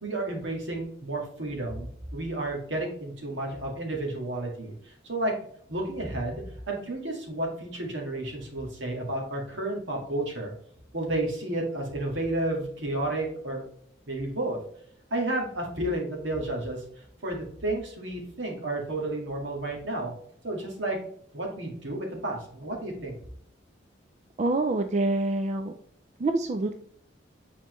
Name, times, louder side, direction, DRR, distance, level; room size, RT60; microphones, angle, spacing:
voice 1, 0.0-5.3 5.7-10.5 10.9-13.6 14.1-14.6 15.1-20.1 20.4-21.0 21.3-23.2, right 1 dB, 75° right, 0 dB, 1.9 m, -31 dB
voice 2, 24.4-25.7 26.2-26.7, right 2 dB, 35° right, 7 dB, 0.3 m, -26 dB
7.2 x 4.3 x 3.1 m, 0.65 s
head